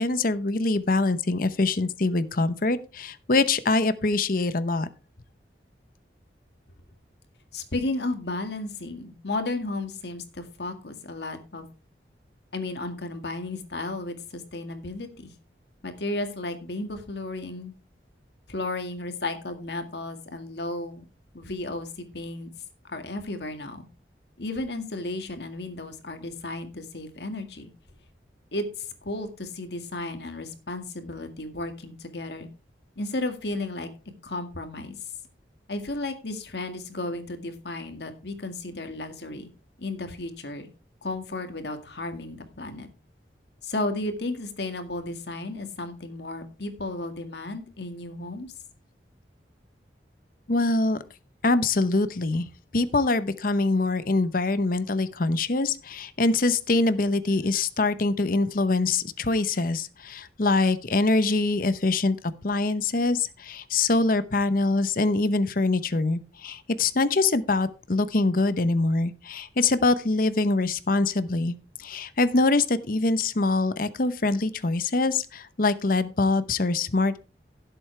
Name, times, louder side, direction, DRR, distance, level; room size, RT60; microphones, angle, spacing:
voice 1, 0.0-4.9 50.5-51.0 51.4-52.5 52.7-62.2 62.4-77.2, left 3 dB, 55° left, 13 dB, 0.8 m, -24 dB
voice 2, 7.5-11.7 12.5-15.3 15.8-17.7 18.5-21.1 21.3-22.5 22.8-23.9 24.4-27.7 28.5-32.5 33.0-33.9 34.2-35.1 35.7-39.5 39.8-40.7 41.0-42.9 43.6-48.5, left 2 dB, 70° left, 7 dB, 1.9 m, -33 dB
16.0 x 7.8 x 3.3 m, 0.33 s
head